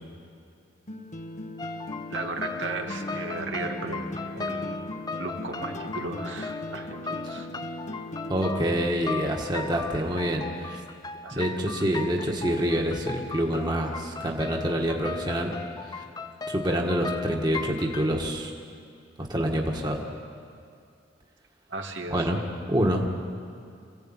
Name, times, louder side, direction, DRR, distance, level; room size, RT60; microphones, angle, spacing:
sound 1, 0.9-8.9, left 1 dB, 40° left, 1.1 m, -37 dB
sound 2, 1.6-18.1, left 4 dB, 20° left, 0.7 m, -37 dB
voice 1, 2.1-4.1 4.4-4.8 5.1-7.5 11.2-11.6 21.7-22.3, right 3 dB, 85° right, 3 dB, 2.2 m, -35 dB
voice 2, 8.3-10.8 11.3-15.5 15.9-16.0 16.5-18.5 19.2-20.0 22.1-22.4 22.7-23.1, equal, 25° right, 0 dB, 1.8 m, -26 dB
26.5 x 16.0 x 9.1 m, 2.4 s
head